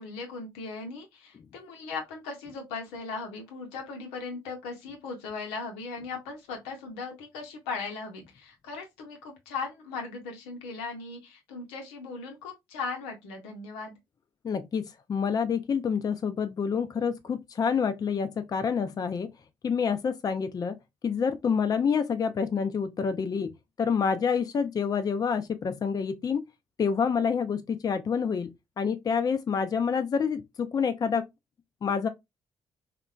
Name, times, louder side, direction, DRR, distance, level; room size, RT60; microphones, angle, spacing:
voice 1, 0.0-13.9, left 4 dB, 85° left, 0.7 m, -38 dB
voice 2, 14.4-19.3 19.6-20.8 21.0-23.5 23.8-26.4 26.8-28.5 28.8-31.2 31.8-32.1, left 6 dB, 40° left, 0.4 m, -27 dB
2.9 x 2.1 x 2.3 m
hypercardioid pair, 50°, 10 cm